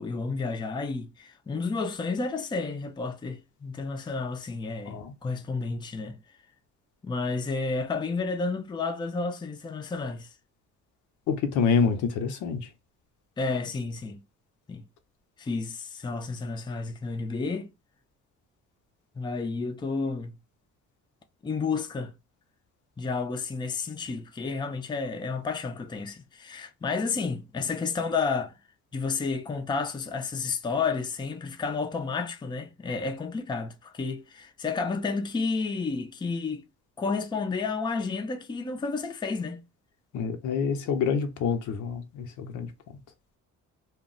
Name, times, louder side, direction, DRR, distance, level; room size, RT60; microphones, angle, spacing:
voice 1, 0.0-6.2 7.0-10.3 13.4-14.2 14.7-14.8 15.4-17.7 19.2-20.3 21.4-22.1 23.0-28.5 28.9-36.6 37.0-39.6, left 4 dB, 15° left, 0.4 m, -31 dB
voice 2, 11.3-12.7 40.1-42.7, left 6 dB, 80° left, 0.6 m, -27 dB
2.3 x 2.0 x 3.8 m
cardioid pair, 90°, 30 cm